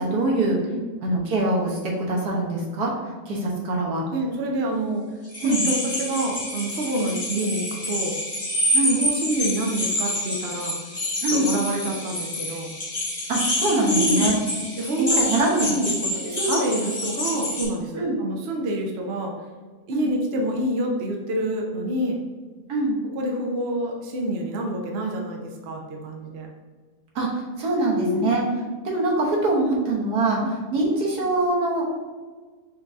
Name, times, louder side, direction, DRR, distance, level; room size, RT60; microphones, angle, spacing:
voice 1, 0.0-0.6 1.0-2.9 3.3-4.0 5.4-5.7 8.7-9.0 11.2-11.5 13.3-14.4 15.0-15.7 16.1-16.6 18.0-18.1 19.9-20.1 22.7-23.0 27.1-28.4 28.8-31.9, right 2 dB, 75° right, -3 dB, 1.6 m, -23 dB
voice 2, 4.1-5.0 5.4-8.1 8.8-10.8 11.3-12.7 13.8-14.3 14.8-15.2 15.7-15.9 16.3-19.3 19.9-22.2 23.2-26.5 27.9-28.4 30.4-30.5, right 1 dB, 55° right, 0 dB, 0.8 m, -27 dB
sound 1, 5.3-17.7, left 1 dB, 25° left, 1.1 m, -27 dB
5.3 x 3.5 x 2.6 m, 1.4 s
omnidirectional pair, 1.7 m